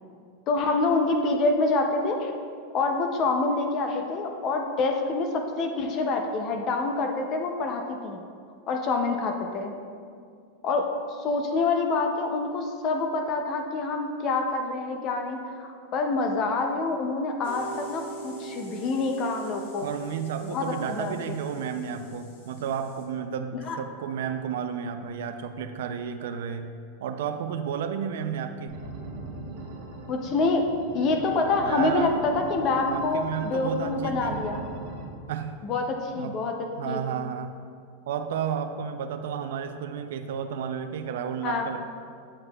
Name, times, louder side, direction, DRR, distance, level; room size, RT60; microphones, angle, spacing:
voice 1, 0.5-2.3 2.7-8.2 8.7-9.7 10.6-19.9 20.4-21.1 23.6-23.8 30.1-30.6 30.9-34.7 35.6-36.5 36.9-37.0 41.4-41.7, left 3 dB, 25° left, 3 dB, 0.4 m, -26 dB
sound 1, 17.4-23.0, right 4 dB, 70° left, 1.5 m, -44 dB
voice 2, 19.8-26.7 27.0-28.8 31.6-32.2 32.9-34.4 35.3-35.6 36.2-36.4 36.8-37.6 38.1-41.8, right 7 dB, 70° right, 7 dB, 0.3 m, -32 dB
sound 2, 28.7-35.1, right 2 dB, 45° right, 1.0 m, -40 dB
7.7 x 7.6 x 2.2 m, 2.3 s
supercardioid pair, 175°, 0 cm